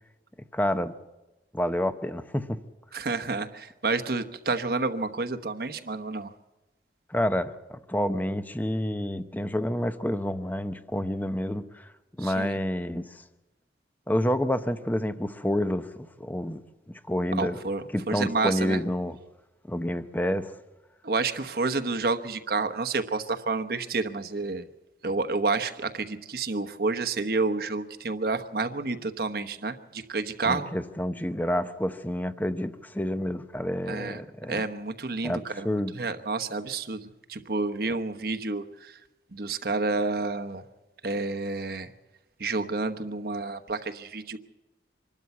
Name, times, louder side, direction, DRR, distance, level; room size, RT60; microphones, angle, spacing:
voice 1, 0.5-0.9 1.5-2.6 7.1-11.9 12.2-13.2 14.1-16.6 17.1-17.6 17.9-19.2 19.7-20.5 30.4-34.6 35.2-36.0, left 1 dB, 10° left, 10 dB, 0.7 m, -29 dB
voice 2, 2.9-6.3 12.2-12.5 17.3-18.8 21.0-24.6 25.0-30.7 33.9-34.2 34.5-35.7 35.9-39.0 39.3-40.6 41.0-41.9 42.4-44.4, right 3 dB, 55° right, 7 dB, 1.1 m, -29 dB
25.5 x 12.5 x 8.3 m, 1.1 s
head